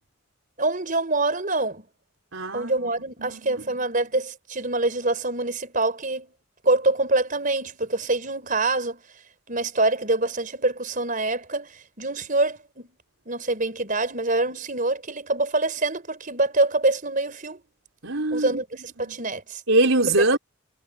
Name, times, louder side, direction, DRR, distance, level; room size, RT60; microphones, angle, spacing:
voice 1, 0.6-1.8 2.5-6.3 6.6-9.0 9.5-12.9 13.3-17.6 18.3-19.6, right 2 dB, 40° right, 4.8 m, -25 dB
voice 2, 2.3-2.9 3.2-3.6 18.0-18.6 19.0-19.2 19.7-20.4, right 2 dB, 70° right, 4.8 m, -23 dB
head